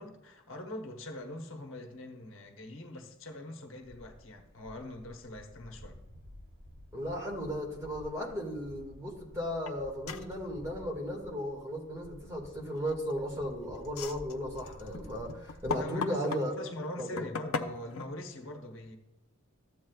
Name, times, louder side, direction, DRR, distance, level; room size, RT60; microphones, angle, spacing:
voice 1, 0.0-6.0 15.7-19.0, left 1 dB, 65° left, 2 dB, 1.0 m, -43 dB
sound 1, 3.8-15.8, left 1 dB, 70° right, 3.6 m, -52 dB
voice 2, 6.9-16.5 17.0-17.3, equal, 15° right, -2 dB, 1.9 m, -35 dB
sound 2, 9.7-9.8 10.1-10.3 12.8-13.2 13.8-16.5 17.0-18.1, left 5 dB, 80° left, 0.6 m, -37 dB
14.0 x 8.4 x 2.4 m, 1.0 s
head